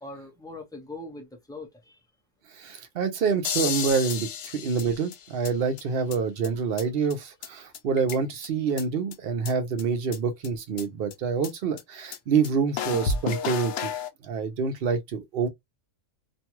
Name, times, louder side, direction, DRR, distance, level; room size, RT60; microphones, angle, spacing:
voice 1, 0.0-2.0, left 2 dB, 5° left, 0.5 m, -41 dB
voice 2, 2.6-13.9 14.2-15.5, right 5 dB, 55° right, 0.8 m, -27 dB
sound 1, 3.4-5.5 5.8-5.9 6.1-6.2 6.4-6.5 6.8-6.9 7.1-7.2 7.4-7.5 7.7-8.5 8.8-8.9 9.1-9.2 9.5-9.6 9.8-9.9 10.1-10.2 10.4-10.5 10.8-10.9 11.1-11.2 11.4-11.5 11.8-11.9 12.1-12.2 12.4-12.5 12.8-14.1, left 6 dB, 70° left, 0.8 m, -31 dB
2.6 x 2.2 x 2.9 m
omnidirectional pair, 1.3 m